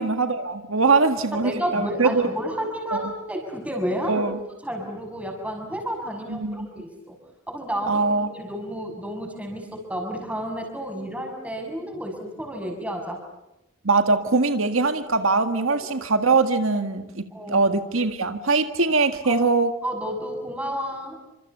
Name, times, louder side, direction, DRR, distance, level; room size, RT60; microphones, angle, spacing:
voice 1, 0.0-2.3 2.9-3.1 4.1-4.4 6.3-6.7 7.9-8.3 13.8-19.7, right 3 dB, 80° right, 8 dB, 1.8 m, -22 dB
voice 2, 1.3-4.2 4.6-7.2 7.5-13.2 15.7-15.8 16.7-16.8 17.3-17.7 19.2-19.5 19.8-21.2, equal, 5° right, 3 dB, 6.5 m, -31 dB
29.0 x 27.0 x 6.8 m, 0.94 s
head